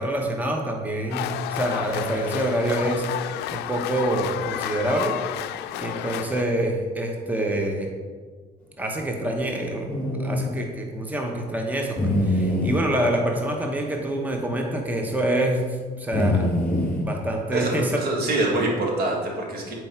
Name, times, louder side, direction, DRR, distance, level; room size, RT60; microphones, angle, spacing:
voice 1, 0.0-3.1 3.5-5.2 5.5-7.9 8.8-9.9 10.2-16.5 17.0-18.0, right 1 dB, 10° right, 2 dB, 0.9 m, -26 dB
sound 1, 1.1-6.4, left 12 dB, 85° left, 0.4 m, -31 dB
sound 2, 9.9-10.4 12.0-12.8 14.0-14.1 14.3-14.4 16.1-17.0 18.3-18.6, left 1 dB, 5° left, 1.9 m, -23 dB
voice 2, 17.5-19.7, right 2 dB, 70° right, -1 dB, 1.8 m, -25 dB
7.8 x 4.5 x 4.5 m, 1.5 s
cardioid pair, 110°, 17 cm